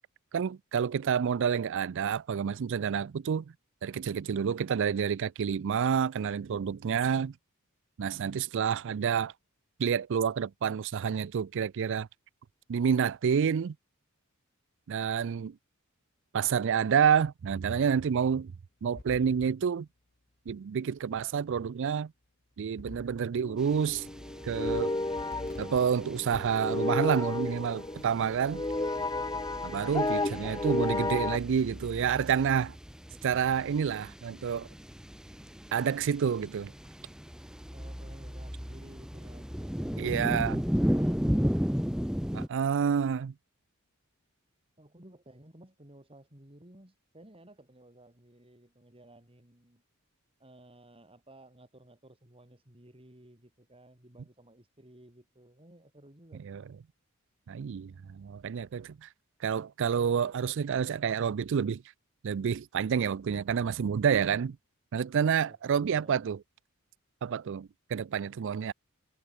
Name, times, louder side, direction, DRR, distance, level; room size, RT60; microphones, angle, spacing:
voice 1, 0.3-3.5 3.8-7.3 8.0-9.3 9.8-12.1 12.7-13.8 14.9-15.6 16.3-18.5 18.8-19.9 20.5-22.1 22.6-24.1 24.4-24.9 25.6-28.6 29.6-32.7 33.2-34.7 35.7-36.7 40.0-40.6 42.3-43.3 56.4-56.6 57.5-59.1 59.4-61.8 62.2-64.6 64.9-66.4 67.2-68.7, right 7 dB, 60° right, 0.4 m, -29 dB
sound 1, 19.0-19.5 20.5-20.6 22.8-23.2 23.7-24.0 24.4-24.8 25.2-25.8 26.3-26.8, left 2 dB, 40° left, 1.0 m, -46 dB
sound 2, 23.4-31.4, left 2 dB, 15° left, 0.9 m, -33 dB
sound 3, 23.6-42.5, equal, 5° right, 1.4 m, -36 dB
voice 2, 37.7-41.7 44.8-49.8 50.4-56.4 65.4-66.3, right 1 dB, 25° right, 4.6 m, -55 dB
head